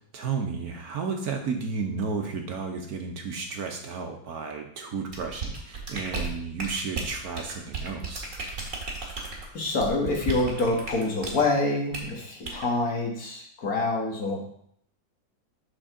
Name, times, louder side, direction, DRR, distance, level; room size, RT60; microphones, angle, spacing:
voice 1, 0.1-8.3, right 5 dB, 60° right, 4 dB, 1.2 m, -32 dB
sound 1, 5.1-11.4 11.9-12.1 12.4-12.7, right 4 dB, 45° right, 1.9 m, -34 dB
voice 2, 9.5-14.4, left 2 dB, 55° left, -1 dB, 1.9 m, -26 dB
8.0 x 6.2 x 3.7 m, 0.66 s
omnidirectional pair, 2.0 m